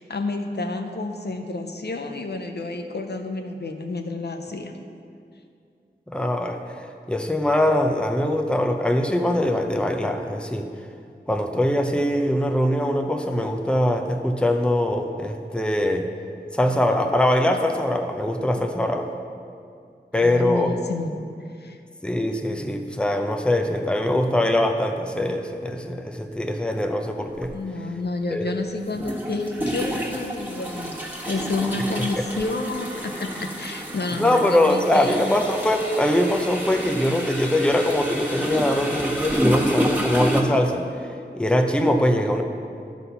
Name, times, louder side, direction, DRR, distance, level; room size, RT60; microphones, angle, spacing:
voice 1, 0.0-4.8 18.6-18.7 20.2-21.2 21.6-21.8 27.5-35.4, left 3 dB, 70° left, 4 dB, 0.6 m, -30 dB
voice 2, 6.1-10.7 11.3-16.1 16.5-19.1 20.1-20.7 22.0-27.5 28.3-28.5 34.2-41.1 41.4-42.4, left 1 dB, 5° left, 4 dB, 0.6 m, -22 dB
sound 1, 27.4-27.5 28.9-40.4, equal, 10° right, 1.5 m, -29 dB
11.5 x 4.1 x 5.6 m, 2.4 s
wide cardioid pair, 50°, 18 cm